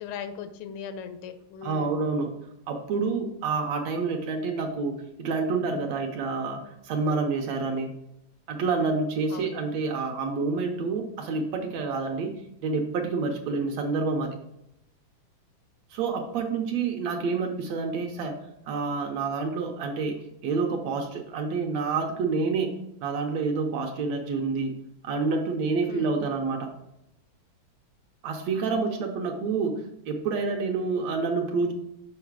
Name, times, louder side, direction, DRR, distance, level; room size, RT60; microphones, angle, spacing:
voice 1, 0.0-2.0 9.3-9.6 25.9-26.1, left 7 dB, 90° left, 10 dB, 2.2 m, -38 dB
voice 2, 1.6-2.4 2.7-4.9 5.2-7.9 8.5-14.3 15.9-18.3 18.7-20.2 20.4-22.8 23.0-24.7 25.0-26.7 28.2-31.7, right 4 dB, 70° right, 3 dB, 1.8 m, -28 dB
6.5 x 4.9 x 4.6 m, 0.81 s
omnidirectional pair, 3.5 m